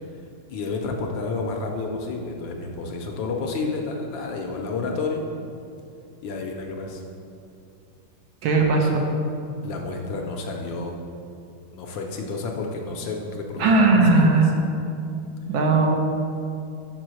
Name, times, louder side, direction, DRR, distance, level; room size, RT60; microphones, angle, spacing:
voice 1, 0.5-5.2 6.2-7.0 9.6-11.0 11.7-13.8 14.1-14.4, left 3 dB, 70° left, 1 dB, 1.3 m, -30 dB
voice 2, 8.4-9.0 13.6-14.5 15.5-16.0, right 3 dB, 75° right, 1 dB, 1.5 m, -18 dB
5.4 x 4.5 x 6.2 m, 2.6 s
omnidirectional pair, 2.3 m